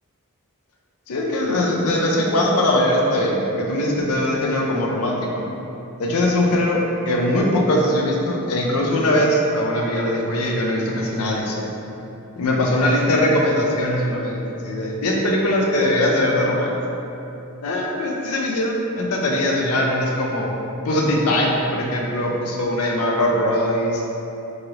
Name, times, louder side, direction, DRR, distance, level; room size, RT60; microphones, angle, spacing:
voice 1, 1.1-5.5 6.0-11.6 12.4-16.8 17.6-20.5 20.8-24.0, left 1 dB, 85° left, -1 dB, 0.5 m, -21 dB
3.2 x 2.4 x 2.7 m, 2.9 s
head